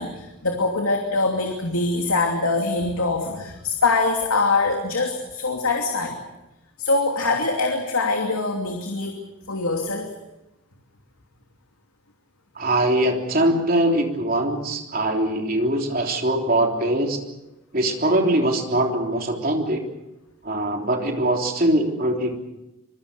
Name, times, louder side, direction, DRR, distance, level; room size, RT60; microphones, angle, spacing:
voice 1, 0.0-6.2 6.8-9.2 9.5-10.1, left 3 dB, 85° left, 2 dB, 2.8 m, -23 dB
voice 2, 12.5-17.2 17.7-19.8 20.4-22.3, right 1 dB, 40° right, 2 dB, 3.4 m, -22 dB
25.5 x 23.0 x 6.7 m, 0.95 s
head